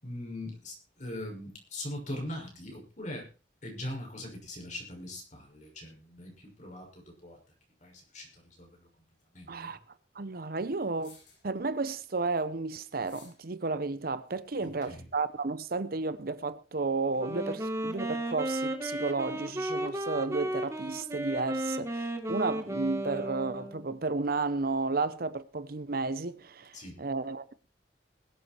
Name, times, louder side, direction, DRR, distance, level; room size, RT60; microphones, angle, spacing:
voice 1, 0.0-3.3 3.6-7.4 7.8-8.9 9.3-9.7 14.6-15.1 26.7-27.0, left 1 dB, 45° left, 6.0 m, -41 dB
sound 1, 8.8-8.9 10.8-11.6 12.9-13.5, left 5 dB, 85° left, 7.1 m, -57 dB
voice 2, 9.5-9.8 10.2-11.2 11.4-27.5, right 3 dB, 55° right, 0.8 m, -32 dB
Wind instrument woodwind instrument, 17.1-23.9, right 1 dB, 15° right, 1.8 m, -34 dB
21.0 x 8.5 x 4.4 m
head